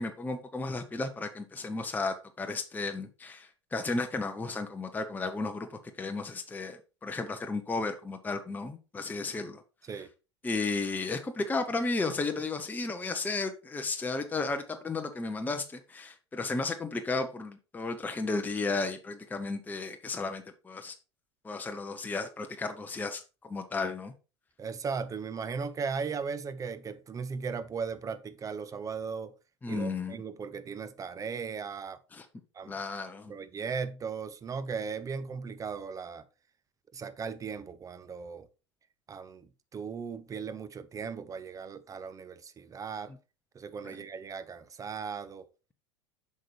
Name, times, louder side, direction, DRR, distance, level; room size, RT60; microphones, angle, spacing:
voice 1, 0.0-5.7 6.0-9.6 10.4-20.9 21.4-24.1 29.6-30.2 32.1-32.2 32.7-33.3 43.8-44.0, left 3 dB, 10° left, 0.8 m, -34 dB
voice 2, 24.6-29.3 29.7-32.0 32.5-32.7 33.3-36.2 36.9-38.5 39.1-43.1 43.5-45.5, right 5 dB, 20° right, 0.7 m, -37 dB
7.6 x 5.4 x 3.2 m
hypercardioid pair, 85°, 15 cm